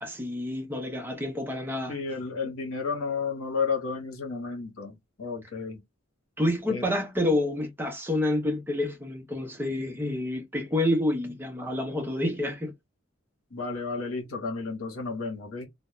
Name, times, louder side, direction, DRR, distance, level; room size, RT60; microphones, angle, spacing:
voice 1, 0.0-2.0 6.4-12.7, left 1 dB, 10° right, 0.5 m, -28 dB
voice 2, 1.9-5.8 6.7-6.8 13.5-15.7, left 4 dB, 80° left, 0.9 m, -32 dB
2.2 x 2.0 x 2.9 m
head